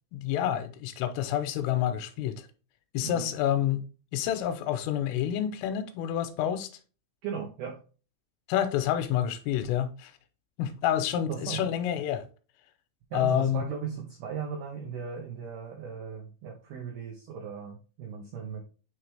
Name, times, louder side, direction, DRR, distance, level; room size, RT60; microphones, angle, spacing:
voice 1, 0.1-2.5 2.9-3.8 4.1-6.7 8.5-10.1 10.6-12.2 13.1-13.6, left 10 dB, 80° left, 3.3 m, -28 dB
voice 2, 7.2-7.8 11.3-11.6 13.1-18.6, right 7 dB, 85° right, 2.2 m, -37 dB
9.4 x 3.3 x 3.3 m
omnidirectional pair, 5.8 m